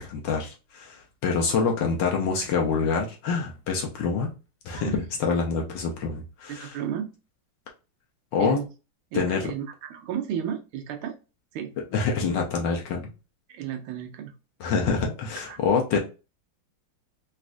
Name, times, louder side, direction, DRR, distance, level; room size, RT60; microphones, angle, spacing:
voice 1, 0.0-4.3 4.6-6.8 8.3-8.6 9.1-9.5 11.9-13.1 14.6-16.0, left 5 dB, 70° left, 1 dB, 1.2 m, -26 dB
voice 2, 6.5-7.1 8.4-8.7 9.1-11.1 11.5-11.7 13.5-14.3 15.4-15.6, right 9 dB, 80° right, 6 dB, 1.4 m, -33 dB
4.1 x 2.3 x 2.4 m, 0.31 s
omnidirectional pair, 2.4 m